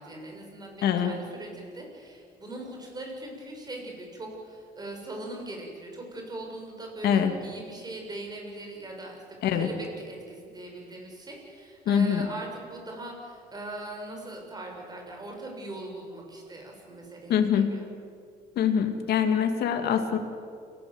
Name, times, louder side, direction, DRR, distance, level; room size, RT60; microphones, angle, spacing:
voice 1, 0.0-17.8, right 2 dB, 25° right, 1 dB, 7.2 m, -40 dB
voice 2, 0.8-1.2 7.0-7.3 9.4-9.7 11.9-12.2 17.3-17.8 18.6-20.2, left 8 dB, 70° left, 6 dB, 2.6 m, -24 dB
28.5 x 16.5 x 8.1 m, 2.3 s
cardioid pair, 110°, 17 cm